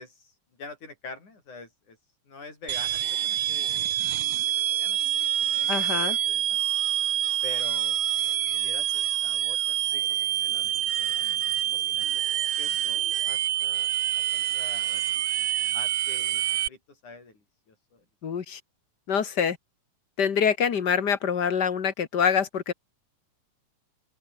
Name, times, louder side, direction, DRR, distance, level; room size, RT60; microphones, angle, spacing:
voice 1, 0.0-2.0 2.3-3.8 4.7-5.0 5.4-5.8 6.0-6.6 7.4-8.0 8.5-10.0 10.3-11.3 11.7-15.0 15.4-16.4 16.7-18.0, left 3 dB, 80° left, 8.5 m, -46 dB
sound 1, 2.7-16.7, right 12 dB, 65° right, 1.3 m, -26 dB
voice 2, 5.7-6.2 18.2-18.6 19.1-19.6 20.2-22.7, left 7 dB, 45° left, 1.7 m, -25 dB
open air
omnidirectional pair, 3.4 m